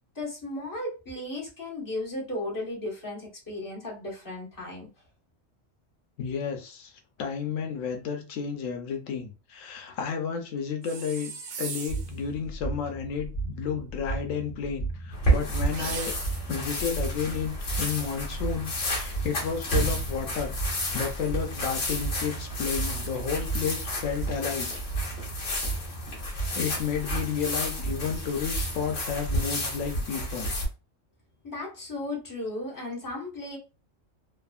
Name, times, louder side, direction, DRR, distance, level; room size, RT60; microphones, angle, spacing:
voice 1, 0.1-4.9 31.4-33.6, left 1 dB, 15° left, -4 dB, 1.0 m, -35 dB
voice 2, 6.2-6.9 7.2-11.3 11.6-16.1 16.5-24.7 26.5-30.5, left 6 dB, 90° left, 4 dB, 1.0 m, -32 dB
sound 1, 10.8-12.2 15.7-16.5, right 5 dB, 70° right, 0.4 m, -38 dB
sound 2, 11.9-30.0, right 2 dB, 45° left, 0.9 m, -36 dB
sound 3, 15.1-30.7, equal, 65° left, 1.4 m, -31 dB
3.3 x 2.0 x 2.3 m, 0.31 s
omnidirectional pair, 1.3 m